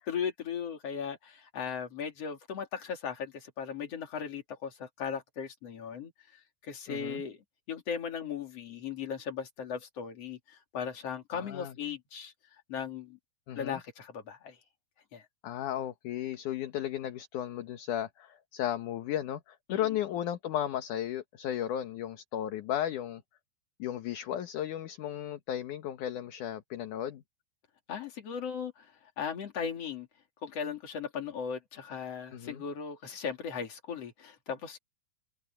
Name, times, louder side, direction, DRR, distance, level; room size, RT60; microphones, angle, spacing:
voice 1, 0.1-6.1 6.6-7.4 7.7-12.3 12.7-13.2 13.6-14.6 15.1-15.2 19.7-19.9 27.9-28.9 29.2-30.1 30.4-34.8, left 7 dB, 45° left, 3.5 m, -37 dB
voice 2, 6.9-7.2 11.3-11.7 13.5-13.8 15.4-23.2 23.8-27.2 32.3-32.6, left 11 dB, 65° left, 2.5 m, -35 dB
omnidirectional pair, 4.3 m